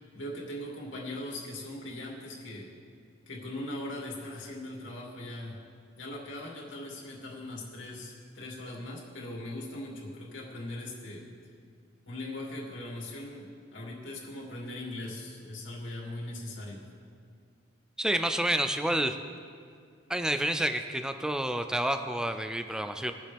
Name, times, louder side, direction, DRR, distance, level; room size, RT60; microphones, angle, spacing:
voice 1, 0.1-2.7 3.3-5.6 6.0-11.3 12.1-16.8, left 1 dB, 75° left, -3 dB, 2.7 m, -40 dB
voice 2, 18.0-19.2 20.1-23.1, right 1 dB, 5° right, 7 dB, 0.4 m, -29 dB
21.5 x 7.4 x 3.5 m, 2.2 s
head